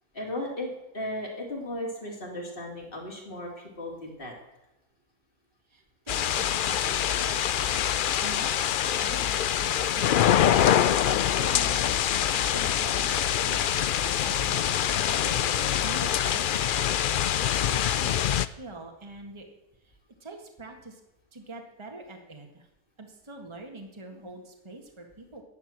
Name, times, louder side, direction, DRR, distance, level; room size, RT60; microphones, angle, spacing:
voice 1, 0.1-0.7 0.9-4.3 24.1-24.3, left 1 dB, 40° left, -1 dB, 3.4 m, -36 dB
voice 2, 5.7-8.0 8.2-16.8 17.1-19.5 19.8-21.0 21.3-22.7 23.0-25.4, right 2 dB, 20° right, 2 dB, 1.8 m, -44 dB
sound 1, 6.1-18.5, left 10 dB, 85° left, 0.4 m, -25 dB
sound 2, 10.7-16.0, left 7 dB, 55° left, 1.1 m, -43 dB
11.0 x 10.0 x 7.5 m, 0.96 s
omnidirectional pair, 1.5 m